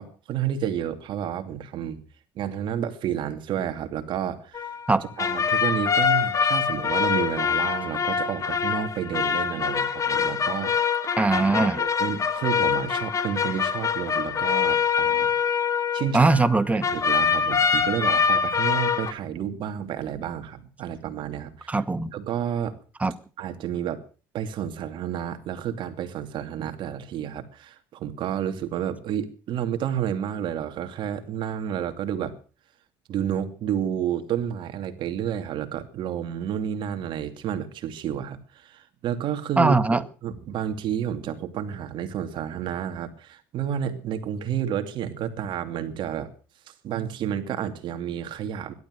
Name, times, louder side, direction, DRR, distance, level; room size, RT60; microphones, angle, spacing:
voice 1, 0.0-2.0 2.4-4.7 5.2-10.7 11.6-15.3 15.9-16.3 16.9-21.8 22.1-22.7 23.4-24.0 24.3-32.3 33.1-46.3 46.7-48.7, right 9 dB, 60° right, 8 dB, 2.8 m, -30 dB
sound 1, 4.5-16.6 16.8-19.1, left 6 dB, 35° left, 2.1 m, -24 dB
voice 2, 11.2-11.8 16.1-16.9 21.7-22.1 23.0-23.1 39.6-40.0, right 3 dB, 15° right, 13 dB, 1.5 m, -20 dB
18.0 x 12.5 x 6.5 m, 0.39 s
supercardioid pair, 90°, 9 cm